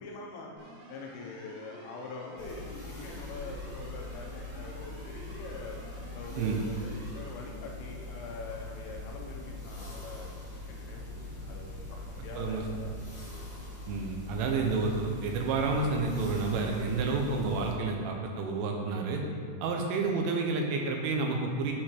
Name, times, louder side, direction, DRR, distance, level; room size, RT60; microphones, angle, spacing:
voice 1, 0.0-5.8 6.1-11.2 11.4-13.1, left 4 dB, 85° left, 0 dB, 3.5 m, -44 dB
sound 1, 0.6-7.3, right 1 dB, 65° right, 2.7 m, -50 dB
sound 2, 2.4-17.7, left 1 dB, 55° left, 1.2 m, -42 dB
voice 2, 13.9-19.2 19.6-21.7, right 4 dB, 85° right, 1 dB, 3.4 m, -30 dB
9.9 x 4.4 x 4.4 m, 2.3 s
omnidirectional pair, 5.6 m